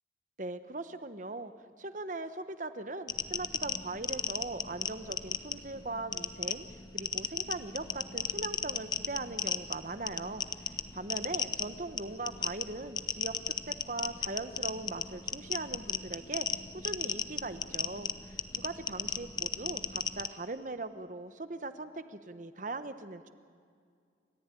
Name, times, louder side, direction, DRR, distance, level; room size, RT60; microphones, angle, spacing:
voice 1, 0.4-1.5 1.8-6.6 6.9-10.4 10.9-13.4 13.7-23.3, right 2 dB, 45° right, 11 dB, 1.1 m, -40 dB
sound 1, 3.1-20.3, left 6 dB, 25° left, 0.7 m, -36 dB
29.0 x 14.0 x 9.1 m, 2.2 s
head